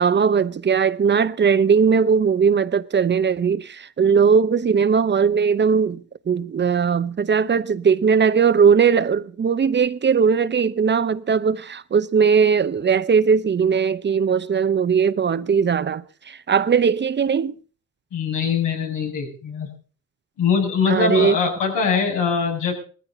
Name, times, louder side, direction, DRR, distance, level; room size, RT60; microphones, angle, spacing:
voice 1, 0.0-17.5 20.9-21.4, right 6 dB, 35° right, 0.8 m, -19 dB
voice 2, 18.1-19.7 20.4-22.7, left 6 dB, 85° left, 7.1 m, -22 dB
19.5 x 14.5 x 3.9 m
cardioid pair, 90°, 30 cm